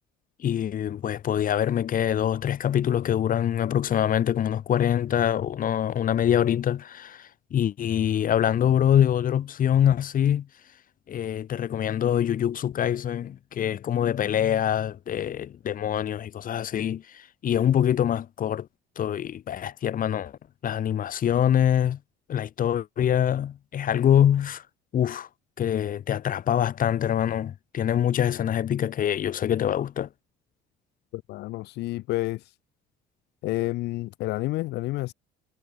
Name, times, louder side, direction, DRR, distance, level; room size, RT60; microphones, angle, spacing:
voice 1, 0.4-10.5 11.1-18.7 19.0-22.0 22.3-24.6 24.9-25.3 25.6-30.1, left 10 dB, 55° left, 7.6 m, -24 dB
voice 2, 31.1-32.5 33.4-35.1, left 18 dB, 85° left, 3.0 m, -29 dB
cardioid pair, 110°, 17 cm